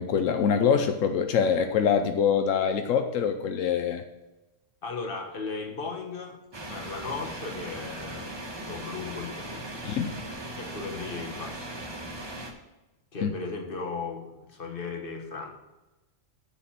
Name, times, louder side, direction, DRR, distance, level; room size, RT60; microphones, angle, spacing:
voice 1, 0.0-4.0 9.8-10.2 13.2-13.3, left 7 dB, 85° left, 7 dB, 1.1 m, -24 dB
voice 2, 4.8-6.4 6.6-8.2 8.6-10.0 10.6-11.8 13.1-15.5, left 4 dB, 45° left, 2 dB, 1.7 m, -36 dB
sound 1, 6.5-12.5, right 1 dB, 20° right, 1.0 m, -38 dB
7.2 x 6.8 x 7.4 m, 1.0 s
omnidirectional pair, 1.3 m